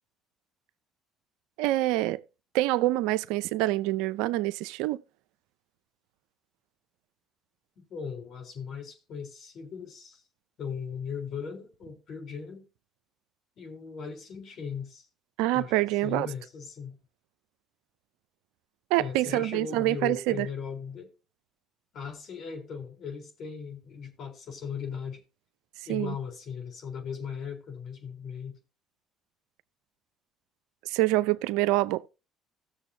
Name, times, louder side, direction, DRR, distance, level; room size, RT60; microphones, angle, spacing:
voice 1, 1.6-2.2 2.5-5.0 15.4-16.3 18.9-20.5 25.9-26.1 30.8-32.1, right 17 dB, 80° right, 0.5 m, -26 dB
voice 2, 7.8-10.2 10.6-12.7 13.6-15.1 15.5-15.7 16.0-17.0 18.9-21.1 21.9-25.2 25.9-28.6, left 6 dB, 60° left, 3.8 m, -38 dB
16.0 x 7.0 x 2.7 m
supercardioid pair, 70°, 0 cm